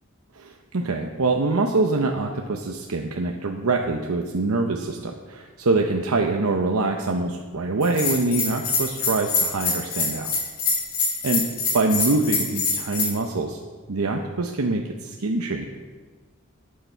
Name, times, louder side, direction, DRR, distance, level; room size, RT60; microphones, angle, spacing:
voice 1, 0.3-10.3 11.2-11.4 11.7-13.6 13.9-15.7, right 3 dB, 80° right, 2 dB, 0.8 m, -24 dB
Bell, 7.8-13.1, left 4 dB, 90° left, 2.8 m, -25 dB
12.0 x 8.7 x 4.5 m, 1.4 s
head